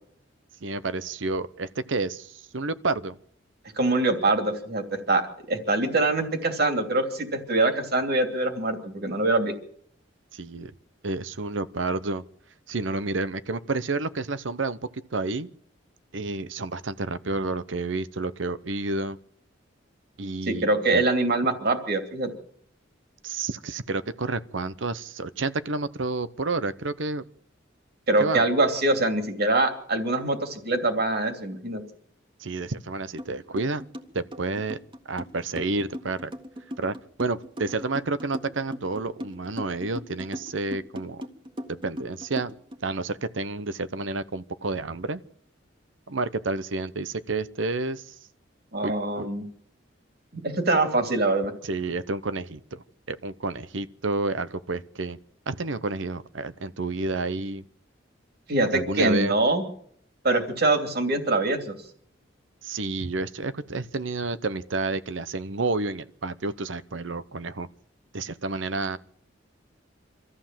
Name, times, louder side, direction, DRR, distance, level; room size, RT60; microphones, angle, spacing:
voice 1, 0.6-3.2 10.3-10.7 11.0-12.2 12.7-14.8 15.1-15.5 16.1-19.2 20.2-20.7 20.9-21.0 23.2-27.2 28.2-28.4 32.4-33.8 34.1-34.8 35.1-36.3 36.8-41.2 41.7-42.5 42.8-45.2 46.1-48.0 48.8-48.9 49.2-49.3 51.6-55.2 55.5-57.6 58.7-59.3 62.6-67.7 68.1-69.0, right 3 dB, 90° right, 0.9 m, -30 dB
voice 2, 3.8-5.2 5.5-9.5 20.5-22.3 28.1-31.8 48.7-49.4 50.3-51.5 58.5-59.6 60.2-61.7, right 2 dB, 55° right, 2.8 m, -24 dB
sound 1, 33.2-33.3 33.6-42.8, equal, 30° right, 1.6 m, -38 dB
24.5 x 14.0 x 7.5 m
head